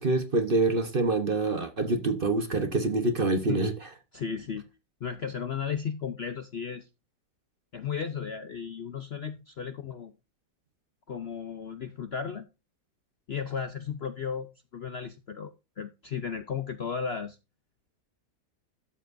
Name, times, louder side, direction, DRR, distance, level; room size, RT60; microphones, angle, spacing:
voice 1, 0.0-3.7, right 3 dB, 40° right, 1.1 m, -26 dB
voice 2, 4.1-4.7 5.0-6.9 7.7-10.1 11.1-12.5 13.3-17.4, left 7 dB, 55° left, 0.7 m, -35 dB
12.5 x 7.4 x 2.6 m
omnidirectional pair, 1.8 m